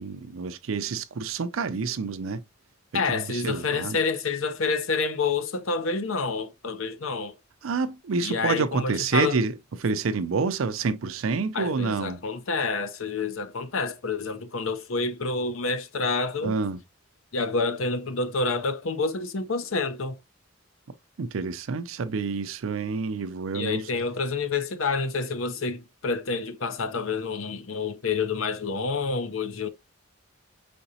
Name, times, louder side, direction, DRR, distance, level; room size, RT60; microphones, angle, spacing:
voice 1, 0.0-2.4 3.1-4.0 7.6-9.5 9.8-12.2 16.4-16.8 21.2-23.9, right 4 dB, 70° right, 0.5 m, -28 dB
voice 2, 2.9-7.4 8.2-9.4 11.5-16.5 17.3-20.2 23.5-29.7, left 4 dB, 65° left, 0.7 m, -28 dB
5.1 x 3.9 x 2.7 m
head